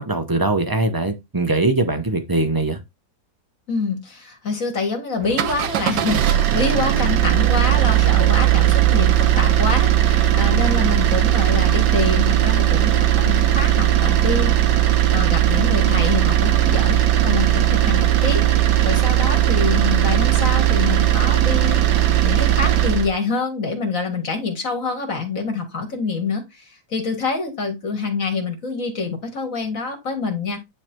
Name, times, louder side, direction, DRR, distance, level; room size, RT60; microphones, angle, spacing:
voice 1, 0.0-2.8, right 2 dB, 30° right, 0.4 m, -21 dB
voice 2, 3.7-14.5 15.1-30.6, left 4 dB, 50° left, 2.3 m, -26 dB
sound 1, 5.2-23.1, right 13 dB, 80° right, 1.5 m, -17 dB
9.6 x 3.3 x 4.5 m
omnidirectional pair, 1.9 m